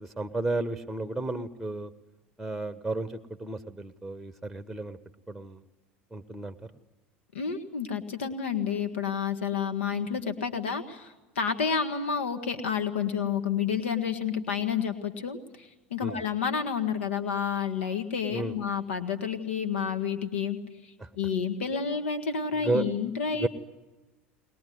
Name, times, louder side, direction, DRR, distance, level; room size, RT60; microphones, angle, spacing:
voice 1, 0.0-1.9 2.4-5.0 5.3-5.6 6.1-6.5 16.0-16.2 18.3-18.5 21.0-21.1 22.6-22.9 23.3-23.5, right 2 dB, ahead, 11 dB, 1.2 m, -32 dB
voice 2, 7.3-20.6 20.8-23.5, left 6 dB, 85° left, 9 dB, 1.8 m, -30 dB
21.5 x 20.5 x 9.4 m, 1.1 s
hypercardioid pair, 85°, 6 cm